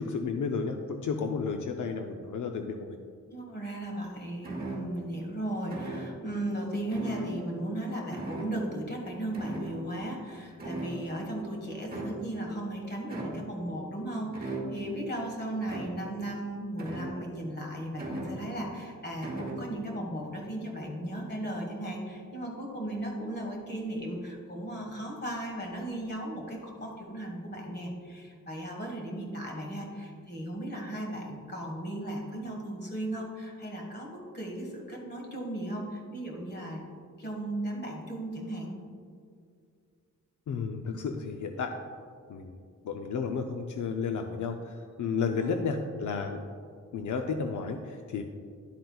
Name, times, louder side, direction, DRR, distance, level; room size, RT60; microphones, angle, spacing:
voice 1, 0.0-3.0 40.5-41.7 42.3-46.4 46.9-48.2, left 5 dB, 75° left, 4 dB, 0.5 m, -32 dB
voice 2, 3.3-36.8 37.2-38.8 45.3-45.6, right 1 dB, 35° left, 0 dB, 1.5 m, -36 dB
sound 1, 4.4-5.1 5.7-6.3 6.9-7.8 8.1-8.8 9.3-10.3 10.6-11.4 11.9-12.5 13.1-13.6 14.3-15.0 15.6-16.2 16.8-17.5 18.0-18.7 19.2-19.7, right 2 dB, 30° right, 1.3 m, -39 dB
11.0 x 7.8 x 2.3 m, 2.2 s
wide cardioid pair, 170°, 30 cm